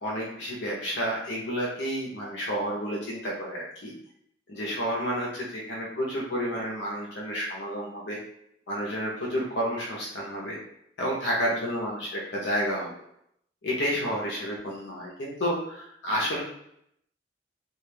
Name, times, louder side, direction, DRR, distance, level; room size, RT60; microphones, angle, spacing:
voice 1, 0.0-3.9 4.5-8.2 8.7-10.6 11.0-12.9 13.6-16.4, equal, 75° left, -4 dB, 0.7 m, -30 dB
2.3 x 2.2 x 3.2 m, 0.72 s
head